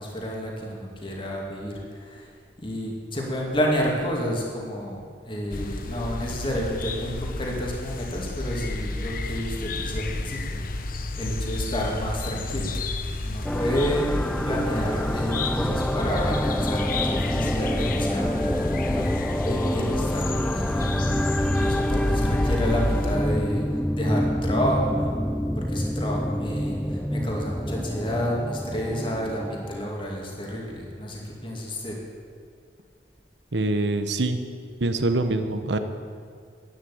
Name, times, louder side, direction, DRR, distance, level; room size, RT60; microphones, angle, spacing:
voice 1, 0.0-1.8 2.1-2.3 2.6-10.6 10.9-12.7 13.2-14.1 14.4-21.3 21.6-23.6 23.9-25.2 25.6-31.9, equal, 30° left, -1 dB, 2.5 m, -30 dB
sound 1, 5.5-23.2, left 2 dB, 50° left, 0.9 m, -30 dB
sound 2, 13.4-29.9, equal, 5° left, 0.4 m, -27 dB
voice 2, 33.5-34.4 34.8-35.8, right 2 dB, 80° right, 9 dB, 1.0 m, -24 dB
11.5 x 9.8 x 8.6 m, 2.1 s
head